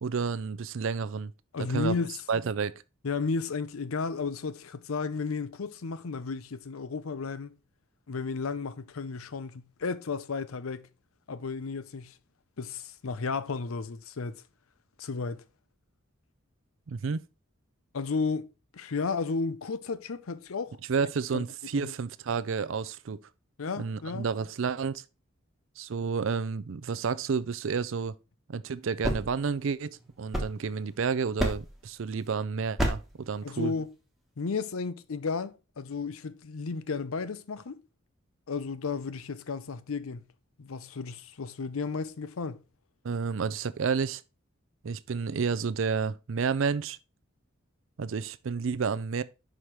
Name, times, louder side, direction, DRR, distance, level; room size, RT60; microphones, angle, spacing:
voice 1, 0.0-1.3 1.7-1.9 2.3-2.8 16.9-17.2 20.9-23.2 23.8-25.0 25.8-28.1 28.5-33.7 43.0-44.2 44.8-47.0 48.0-49.2, right 5 dB, 70° right, 0.4 m, -30 dB
voice 2, 1.5-2.2 3.0-7.5 8.1-10.9 11.3-12.2 12.6-14.4 15.0-15.4 17.9-20.8 21.0-21.4 21.7-21.9 23.6-24.3 33.4-33.9 34.4-37.8 38.5-40.3 40.6-42.6, left 4 dB, 80° left, 0.6 m, -33 dB
sound 1, 28.8-31.0 31.4-31.9 32.8-33.2, equal, ahead, 1.2 m, -32 dB
5.8 x 5.0 x 4.6 m
head